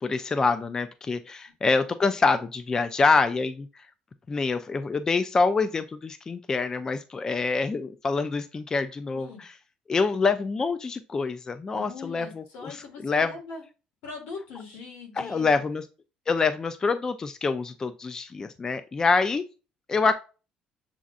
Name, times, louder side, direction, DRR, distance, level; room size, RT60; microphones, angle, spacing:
voice 1, 0.0-3.7 4.3-9.5 9.9-12.8 13.0-13.3 15.2-15.8 16.3-19.4 19.9-20.1, left 4 dB, 25° left, 11 dB, 0.3 m, -26 dB
voice 2, 11.7-13.6 14.0-15.6, left 4 dB, 85° left, 0 dB, 1.8 m, -41 dB
7.1 x 2.5 x 2.4 m, 0.32 s
cardioid pair, 125°, 3 cm